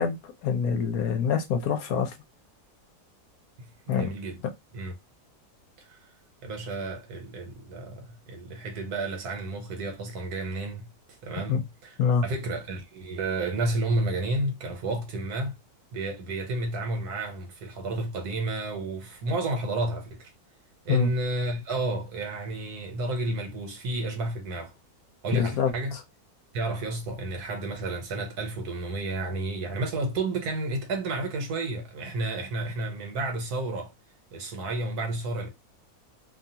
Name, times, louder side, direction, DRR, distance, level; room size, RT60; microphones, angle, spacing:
voice 1, 0.0-2.1 3.9-4.1 11.5-11.6 12.0-12.2 20.9-21.1 25.4-26.0, left 6 dB, 70° left, 1.0 m, -25 dB
voice 2, 3.6-4.4 4.7-4.9 5.8-6.0 6.4-10.9 11.2-11.9 12.2-15.6 15.9-20.3 20.8-24.7 25.2-26.0 26.5-33.9 34.3-35.5, right 2 dB, 75° right, 1.4 m, -31 dB
2.7 x 2.3 x 2.7 m
omnidirectional pair, 1.7 m